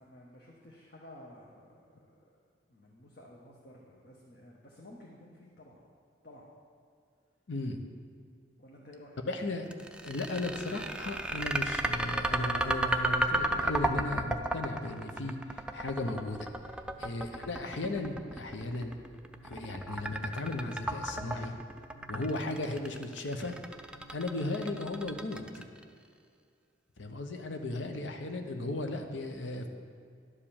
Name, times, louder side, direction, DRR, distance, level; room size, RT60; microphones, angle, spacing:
voice 1, 0.0-2.4 2.7-5.8 6.2-6.5 8.6-9.2 16.8-17.1 19.3-19.5 21.9-22.1 23.9-24.2, left 1 dB, 55° left, -2 dB, 1.0 m, -54 dB
voice 2, 7.5-7.8 9.3-9.7 10.0-16.5 17.0-19.0 19.4-21.6 22.1-23.6 24.1-25.7 27.0-29.7, left 2 dB, 80° left, 5 dB, 0.8 m, -36 dB
sound 1, 9.7-25.8, right 2 dB, 5° right, 0.3 m, -33 dB
11.5 x 5.0 x 7.2 m, 2.3 s
head